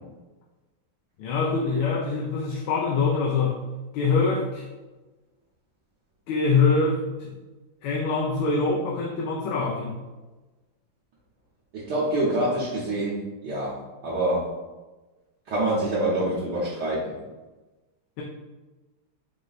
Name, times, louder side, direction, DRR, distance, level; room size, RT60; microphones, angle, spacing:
voice 1, 1.2-3.6 3.9-4.6 6.3-7.3 7.8-9.9 18.2-18.3, left 4 dB, 85° left, -3 dB, 1.5 m, -24 dB
voice 2, 11.7-13.2 13.4-13.8 14.0-14.5 15.5-17.0, right 1 dB, 60° right, -8 dB, 1.2 m, -25 dB
4.7 x 2.1 x 3.9 m, 1.2 s
omnidirectional pair, 2.4 m